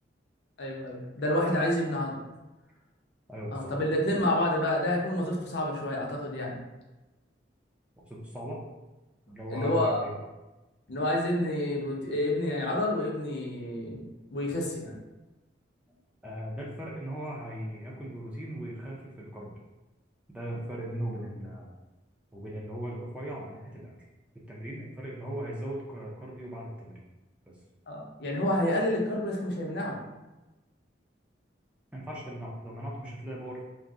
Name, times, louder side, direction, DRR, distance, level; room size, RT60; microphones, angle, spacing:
voice 1, 0.6-2.2 3.5-6.6 9.5-10.0 10.9-14.0 14.3-14.9 27.9-30.0, left 1 dB, 60° left, -2 dB, 0.6 m, -29 dB
voice 2, 3.3-3.7 8.1-8.6 9.3-10.2 16.2-19.5 20.3-21.7 22.3-23.9 24.3-27.0 27.5-27.6 31.9-33.6, equal, 5° right, -5 dB, 0.4 m, -38 dB
2.5 x 2.0 x 3.4 m, 1.1 s
head